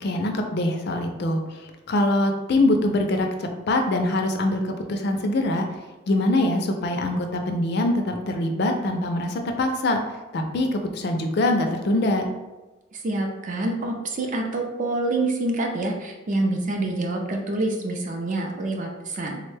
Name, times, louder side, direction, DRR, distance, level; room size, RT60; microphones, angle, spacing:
voice 1, 0.0-5.7 6.1-12.3, left 1 dB, 50° left, 4 dB, 0.4 m, -24 dB
voice 2, 12.9-19.4, right 2 dB, 35° right, 2 dB, 0.4 m, -26 dB
3.6 x 2.1 x 3.2 m, 1.1 s
head